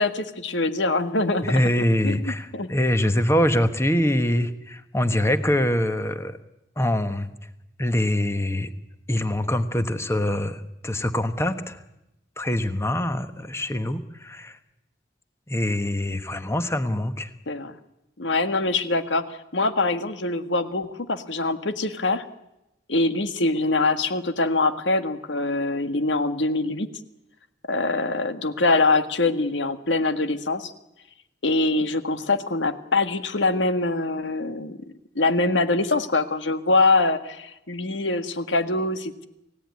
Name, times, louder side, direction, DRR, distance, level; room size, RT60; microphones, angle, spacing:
voice 1, 0.0-1.6 2.0-2.7 17.5-17.7 18.2-22.2 22.9-26.9 27.7-30.7 31.4-34.8 35.1-39.3, left 3 dB, 80° left, 9 dB, 1.7 m, -24 dB
voice 2, 1.4-6.4 6.8-7.3 7.8-8.7 9.1-11.8 12.4-14.6 15.5-17.3, left 1 dB, 15° left, 10 dB, 1.3 m, -24 dB
29.0 x 16.5 x 9.6 m, 0.92 s
head